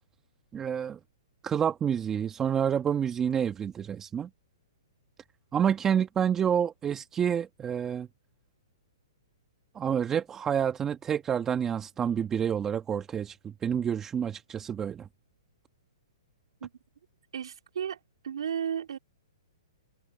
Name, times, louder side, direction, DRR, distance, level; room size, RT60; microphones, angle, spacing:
voice 1, 0.5-1.0 1.4-4.3 5.5-8.1 9.7-15.1, right 8 dB, 15° right, 1.3 m, -28 dB
voice 2, 17.3-18.0 18.2-19.0, right 8 dB, 75° right, 3.0 m, -33 dB
hypercardioid pair, 145°, 3 cm